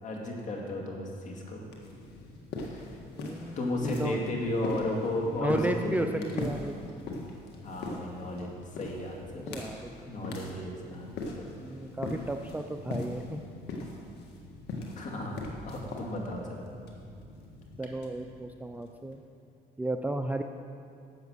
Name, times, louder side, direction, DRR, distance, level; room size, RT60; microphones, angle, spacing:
voice 1, 0.0-1.6 2.6-2.9 3.6-6.3 7.6-9.5 10.1-11.5 15.0-15.4 15.6-16.7, left 1 dB, 45° left, 0 dB, 2.4 m, -34 dB
sound 1, 1.6-19.1, left 2 dB, 80° left, 1.9 m, -41 dB
voice 2, 3.1-4.2 5.3-7.0 9.4-10.4 11.6-13.4 17.8-19.2 19.8-20.4, right 1 dB, 10° right, 5 dB, 0.5 m, -34 dB
12.5 x 7.8 x 6.4 m, 2.5 s
cardioid pair, 110°, 17 cm